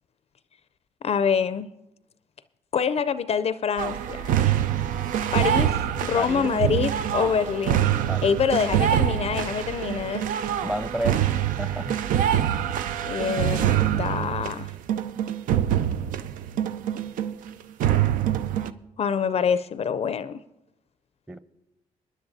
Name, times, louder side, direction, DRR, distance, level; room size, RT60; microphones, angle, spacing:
voice 1, 1.0-1.7 2.7-4.4 5.3-7.9 8.2-10.2 13.1-14.7 19.0-20.4, left 7 dB, 50° left, 14 dB, 0.4 m, -26 dB
sound 1, 3.8-17.5 17.8-18.7, right 10 dB, 85° right, 0.4 m, -25 dB
voice 2, 6.1-6.5 8.1-8.4 10.6-11.2 11.6-12.0 21.3-21.4, equal, 5° right, 12 dB, 0.7 m, -31 dB
22.5 x 10.5 x 2.7 m, 0.93 s
cardioid pair, 75°, 13 cm